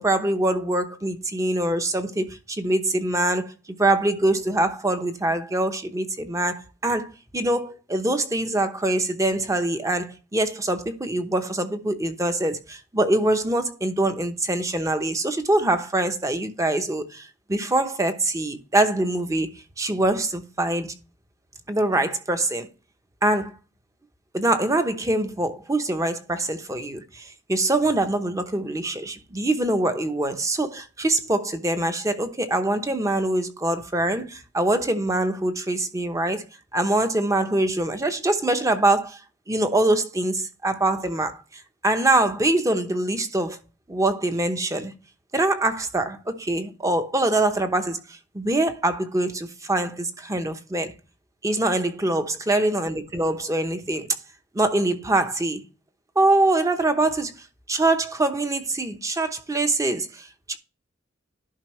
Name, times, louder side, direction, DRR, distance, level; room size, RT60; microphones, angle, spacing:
voice 1, 0.0-3.5 3.8-20.9 21.7-22.7 23.2-23.5 24.3-36.4 36.7-39.2 39.5-43.6 43.9-44.9 45.3-50.9 51.4-54.1 54.5-55.6 56.2-57.4 57.7-60.6, right 2 dB, 15° right, 0.9 m, -24 dB
11.5 x 5.2 x 3.1 m
head